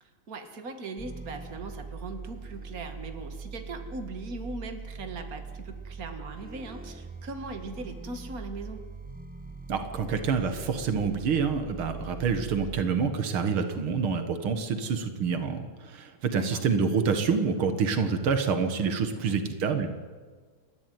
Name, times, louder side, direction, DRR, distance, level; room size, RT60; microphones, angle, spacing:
voice 1, 0.0-8.8 16.3-16.6 19.1-19.4, right 3 dB, 45° right, 7 dB, 2.4 m, -40 dB
sound 1, 1.0-12.8, right 4 dB, 5° right, 1.0 m, -42 dB
voice 2, 9.7-19.9, right 5 dB, 85° right, 8 dB, 2.5 m, -27 dB
29.0 x 12.5 x 9.5 m, 1.5 s
omnidirectional pair, 2.2 m